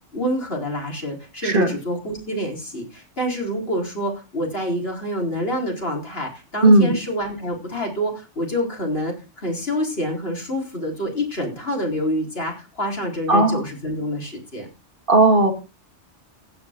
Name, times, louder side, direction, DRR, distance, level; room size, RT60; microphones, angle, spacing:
voice 1, 0.1-14.7, equal, 55° left, 0 dB, 4.5 m, -27 dB
voice 2, 6.6-7.0 13.3-13.6 15.1-15.5, right 2 dB, 45° right, 6 dB, 2.5 m, -15 dB
16.0 x 9.6 x 3.7 m, 0.31 s
omnidirectional pair, 1.2 m